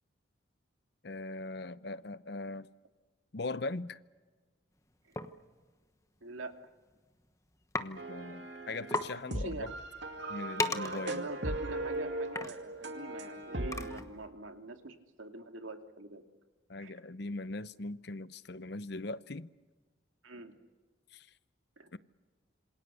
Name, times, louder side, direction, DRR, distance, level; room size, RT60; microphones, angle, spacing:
voice 1, 1.0-2.7 3.3-4.0 7.8-9.7 10.3-11.3 16.7-19.5 21.1-21.3 21.9-22.0, left 2 dB, 55° left, 0.8 m, -40 dB
sound 1, 5.2-5.3 6.4-6.6 6.9-7.2 7.7-7.9 8.2-8.3 8.6-8.7 8.9-9.1 9.6-14.3, left 2 dB, 15° left, 1.1 m, -38 dB
voice 2, 6.2-6.5 9.2-9.8 10.8-16.2 16.8-16.9 20.2-20.5 21.8-21.9, right 2 dB, 85° right, 2.4 m, -45 dB
sound 2, 8.0-14.0, right 1 dB, 60° right, 2.3 m, -38 dB
27.5 x 26.0 x 6.9 m
head